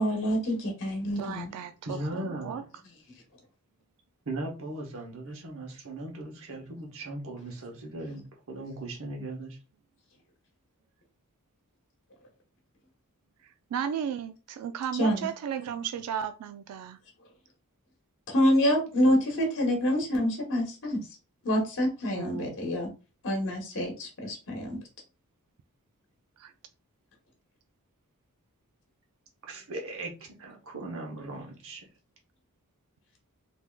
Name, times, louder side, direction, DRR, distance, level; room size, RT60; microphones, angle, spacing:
voice 1, 0.0-1.5 15.0-15.3 18.3-21.0 21.4-22.9 23.2-24.8, equal, 60° left, 1.1 m, -27 dB
voice 2, 1.2-2.6 13.7-17.0 22.1-22.6 26.4-26.5, right 8 dB, 80° right, 0.3 m, -34 dB
voice 3, 1.8-2.6 4.3-9.6 29.5-30.1 30.4-31.9, right 2 dB, 65° right, 0.9 m, -38 dB
3.5 x 2.7 x 2.3 m
head